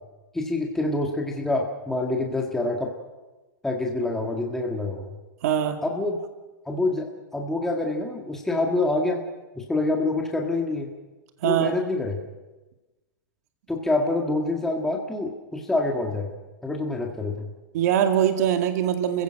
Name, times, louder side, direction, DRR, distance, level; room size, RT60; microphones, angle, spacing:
voice 1, 0.3-2.9 3.6-5.2 5.8-6.2 6.7-9.2 9.6-10.9 11.4-12.2 13.7-16.3 16.6-17.5, left 2 dB, 5° left, 0 dB, 1.8 m, -26 dB
voice 2, 5.4-5.8 11.4-11.8 17.7-19.2, right 10 dB, 55° right, 6 dB, 2.2 m, -22 dB
29.5 x 16.0 x 6.5 m, 1.1 s
supercardioid pair, 160°, 10 cm